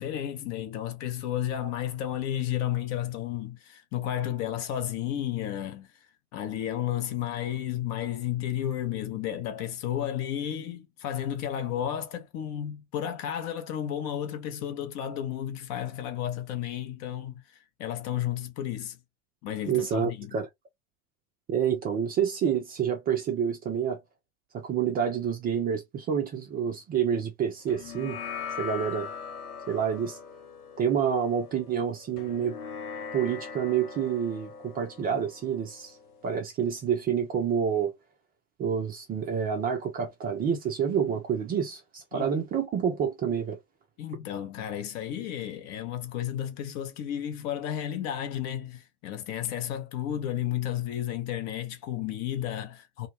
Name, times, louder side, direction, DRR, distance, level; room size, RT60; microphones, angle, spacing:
voice 1, 0.0-5.9 6.3-19.0 19.4-20.4 42.1-42.3 44.0-53.1, left 11 dB, 35° left, 0.7 m, -32 dB
voice 2, 19.7-20.5 21.5-24.0 24.5-28.2 28.6-29.1 29.7-30.2 30.8-32.6 33.1-36.0 36.2-37.9 38.6-43.6, right 7 dB, 20° right, 0.5 m, -28 dB
sound 1, 27.7-36.4, left 6 dB, 75° left, 0.7 m, -41 dB
2.2 x 2.2 x 2.9 m
figure-of-eight pair, 85°, 45 cm